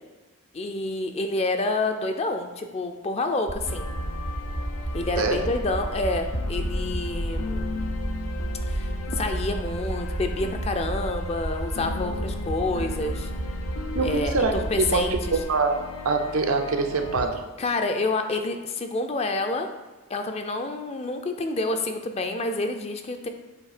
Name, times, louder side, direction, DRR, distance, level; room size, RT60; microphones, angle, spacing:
voice 1, 0.5-3.9 4.9-7.7 8.7-13.3 14.0-15.2 17.6-19.7 20.1-23.3, left 2 dB, 30° left, 6 dB, 0.4 m, -28 dB
sound 1, 3.5-15.4, right 1 dB, 25° right, 0.4 m, -31 dB
sound 2, 3.7-17.3, left 3 dB, 80° left, 0.6 m, -36 dB
voice 2, 5.2-5.5 13.9-14.5 14.8-15.7 16.0-17.4, right 4 dB, 85° right, 4 dB, 0.7 m, -24 dB
7.3 x 2.7 x 4.9 m, 1.2 s
head